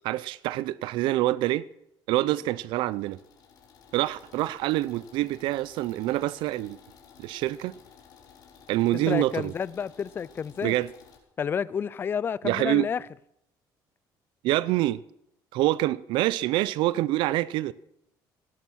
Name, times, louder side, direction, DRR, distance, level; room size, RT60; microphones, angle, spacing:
voice 1, 0.0-1.7 2.1-3.2 3.9-6.8 7.2-7.8 8.7-9.5 10.6-10.9 12.4-12.9 14.4-15.0 15.5-17.7, right 16 dB, 80° right, 0.6 m, -26 dB
sound 1, 2.7-11.2, left 7 dB, 55° left, 4.3 m, -54 dB
voice 2, 9.1-10.7 11.4-13.0, left 7 dB, 25° left, 0.5 m, -30 dB
17.0 x 11.5 x 6.3 m
cardioid pair, 145°, 8 cm